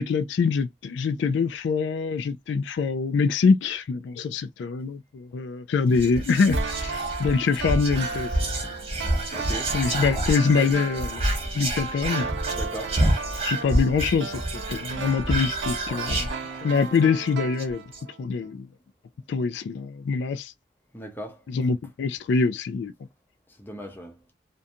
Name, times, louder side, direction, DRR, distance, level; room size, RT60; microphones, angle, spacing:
voice 1, 0.0-8.3 8.6-8.7 9.7-11.2 11.5-12.2 13.4-16.3 16.6-17.9 18.2-18.7 19.3-20.5 21.5-22.9, left 5 dB, 75° left, 0.3 m, -24 dB
Whispering, 5.9-17.0 17.3-17.4 17.6-18.0, right 1 dB, 30° right, 0.9 m, -28 dB
sound 1, 6.5-18.2 18.4-18.5, right 5 dB, 70° right, 0.4 m, -36 dB
voice 2, 9.3-9.7 12.5-13.0 20.9-21.4 23.6-24.2, equal, 10° left, 0.5 m, -37 dB
2.5 x 2.2 x 2.6 m
head